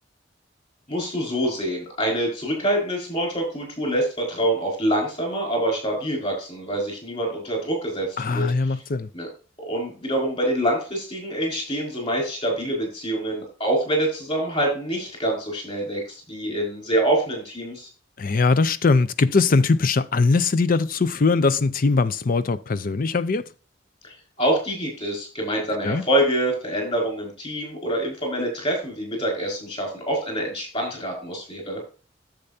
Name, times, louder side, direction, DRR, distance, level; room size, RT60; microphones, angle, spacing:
voice 1, 0.9-8.7 9.1-9.3 9.7-17.9 24.0-31.8, right 1 dB, 35° left, 5.2 m, -26 dB
voice 2, 8.2-9.1 18.2-23.4 25.8-26.0, left 3 dB, 50° left, 0.6 m, -21 dB
10.5 x 7.8 x 2.7 m
head